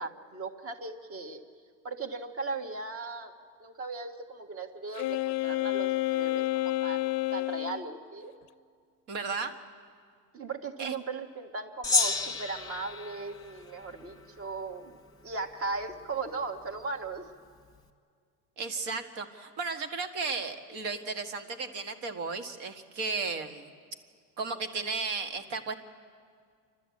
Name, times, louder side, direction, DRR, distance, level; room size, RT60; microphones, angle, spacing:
voice 1, 0.0-1.4 1.8-3.3 3.6-8.3 10.3-15.0 15.2-17.2, right 3 dB, 30° right, 6 dB, 1.6 m, -37 dB
Wind instrument woodwind instrument, 5.0-7.8, left 17 dB, 50° left, 0.5 m, -29 dB
voice 2, 9.1-9.5 10.8-10.9 18.6-23.7 24.4-25.7, right 4 dB, 60° right, 6 dB, 1.9 m, -34 dB
Gong, 11.8-14.5, left 4 dB, 10° left, 1.6 m, -31 dB
28.5 x 12.5 x 8.5 m, 2.1 s
supercardioid pair, 115°, 45 cm